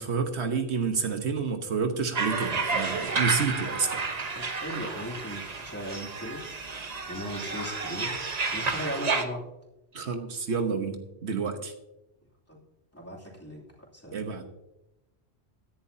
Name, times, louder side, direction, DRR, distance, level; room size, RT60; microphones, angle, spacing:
voice 1, 0.0-4.0 9.9-11.7 14.1-14.5, right 5 dB, 75° right, 6 dB, 1.4 m, -29 dB
sound 1, 2.2-9.3, right 4 dB, 40° right, 1.0 m, -31 dB
voice 2, 4.3-6.6 7.1-8.2 8.5-9.5 12.5-12.6 12.9-14.2, equal, 10° left, -3 dB, 2.8 m, -37 dB
16.5 x 11.0 x 2.8 m, 0.92 s
omnidirectional pair, 1.2 m